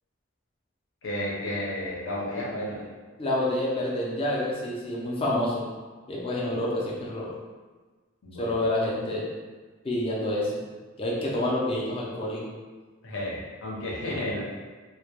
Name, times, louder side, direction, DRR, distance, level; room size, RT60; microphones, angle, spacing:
voice 1, 1.0-2.9 8.2-8.6 13.0-14.4, left 1 dB, 70° left, -5 dB, 0.7 m, -32 dB
voice 2, 3.2-5.7 6.1-7.3 8.4-9.3 9.8-10.6 11.0-12.5, left 1 dB, 25° left, -5 dB, 0.4 m, -28 dB
2.1 x 2.1 x 2.9 m, 1.3 s
head